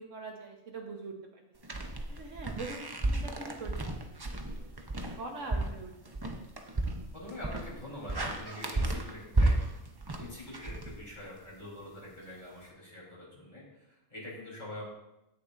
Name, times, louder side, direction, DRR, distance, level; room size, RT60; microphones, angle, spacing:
voice 1, 0.0-1.8 2.1-3.7 4.0-4.7 5.2-5.9, right 3 dB, 70° right, 2 dB, 1.5 m, -43 dB
sound 1, 1.6-11.5, right 2 dB, 25° right, 0.6 m, -33 dB
voice 2, 7.1-9.6 10.1-14.8, left 1 dB, 35° left, -5 dB, 4.1 m, -45 dB
16.0 x 6.9 x 2.6 m, 0.90 s
omnidirectional pair, 1.4 m